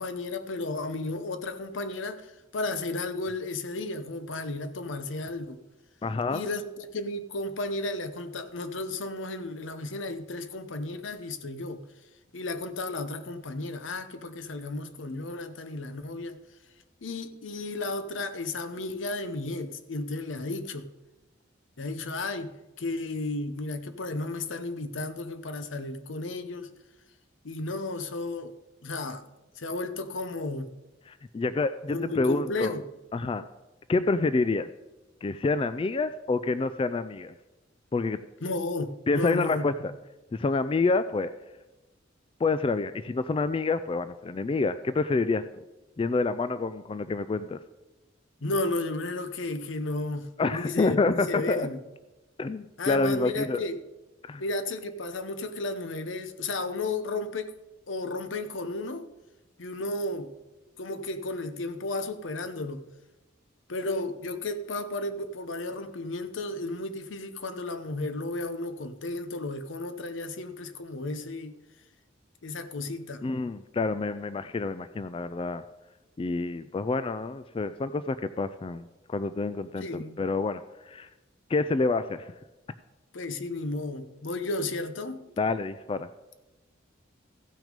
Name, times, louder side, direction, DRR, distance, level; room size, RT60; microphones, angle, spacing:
voice 1, 0.0-5.6 6.3-11.8 12.3-16.4 17.0-20.9 21.8-26.7 27.4-28.5 28.8-29.2 29.6-30.7 31.9-32.8 38.4-39.7 48.4-51.8 52.8-53.8 54.4-57.5 57.9-59.1 59.6-60.3 60.8-62.8 63.7-71.6 72.4-73.3 79.8-80.2 83.1-85.2, left 2 dB, 75° left, 0.8 m, -33 dB
voice 2, 6.0-6.4 31.1-32.7 33.1-33.4 33.9-34.7 35.2-37.3 37.9-38.2 39.1-39.9 40.3-41.3 42.4-45.6 46.0-47.6 50.4-51.7 52.4-53.6 54.2-54.4 73.2-75.6 76.2-79.9 80.2-81.1 81.5-82.3 85.4-86.1, left 3 dB, 25° left, 0.3 m, -28 dB
15.0 x 6.2 x 5.2 m
head